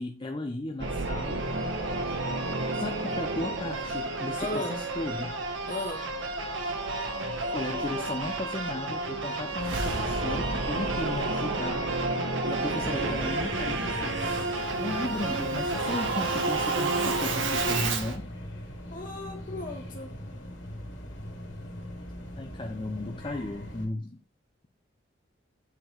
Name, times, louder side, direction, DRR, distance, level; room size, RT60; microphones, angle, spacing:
voice 1, 0.0-1.5 2.7-5.4 7.5-11.9 12.5-14.2 14.8-18.3 22.4-24.2, left 2 dB, 25° left, 0.5 m, -35 dB
Singing / Musical instrument, 0.8-18.2, right 2 dB, 75° right, 1.2 m, -30 dB
voice 2, 4.4-4.8 5.7-6.1 18.9-20.1, left 2 dB, 45° left, 1.8 m, -36 dB
sound 1, 12.8-23.9, equal, 75° left, 2.1 m, -41 dB
7.7 x 3.9 x 4.5 m
head